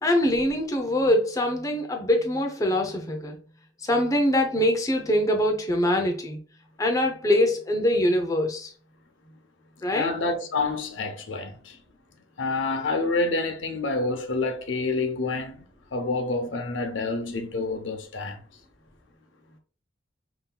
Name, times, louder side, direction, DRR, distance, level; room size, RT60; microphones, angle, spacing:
voice 1, 0.0-3.4 3.8-6.4 6.8-8.7 9.8-10.1, left 1 dB, 20° left, 0.6 m, -23 dB
voice 2, 9.9-11.8 12.4-15.6 15.9-18.4, left 3 dB, 90° left, 0.7 m, -28 dB
5.5 x 2.8 x 2.2 m
head